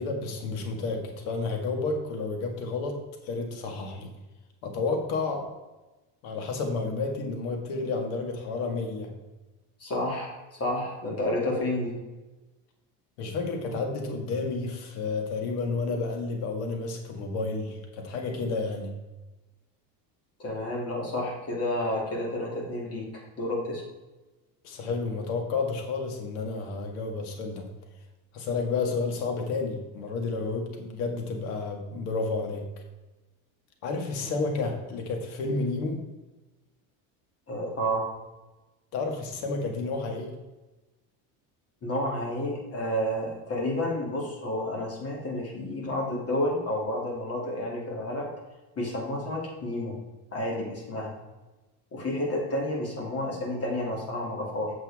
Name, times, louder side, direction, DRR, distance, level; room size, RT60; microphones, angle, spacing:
voice 1, 0.0-3.0 3.2-4.1 4.6-5.4 6.2-9.1 13.2-18.9 24.6-27.7 28.3-32.6 33.8-36.0 38.9-40.4, left 3 dB, 85° left, 3 dB, 2.0 m, -31 dB
voice 2, 9.8-11.9 20.4-23.8 37.5-38.1 41.8-48.3 48.8-49.9 50.3-51.1 51.9-54.7, left 1 dB, 35° left, -2 dB, 2.9 m, -30 dB
8.1 x 7.5 x 3.6 m, 1.1 s
cardioid pair, 125°, 42 cm